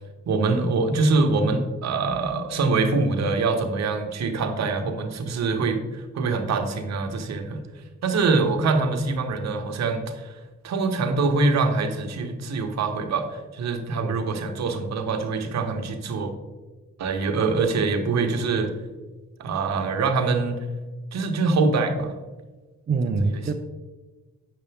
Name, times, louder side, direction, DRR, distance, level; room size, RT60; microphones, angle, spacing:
voice 1, 0.2-7.6 8.0-10.4 10.6-16.3 17.0-18.7 19.4-20.6 21.1-22.1, right 3 dB, 60° right, 5 dB, 1.2 m, -24 dB
voice 2, 22.9-23.5, right 4 dB, 35° right, 3 dB, 0.6 m, -25 dB
8.3 x 6.8 x 3.5 m, 1.2 s
cardioid pair, 90°, 30 cm